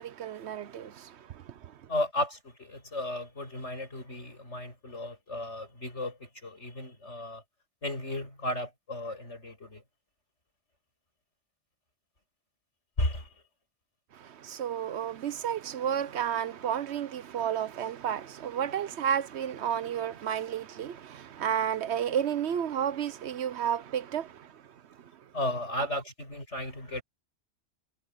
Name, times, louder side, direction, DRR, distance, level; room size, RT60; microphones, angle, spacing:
voice 1, 0.0-1.7 14.1-24.5, right 9 dB, 75° right, 1.0 m, -32 dB
voice 2, 1.9-7.4 7.8-9.8 13.0-13.3 25.3-27.0, left 1 dB, 90° left, 8.1 m, -34 dB
omnidirectional pair, 1.2 m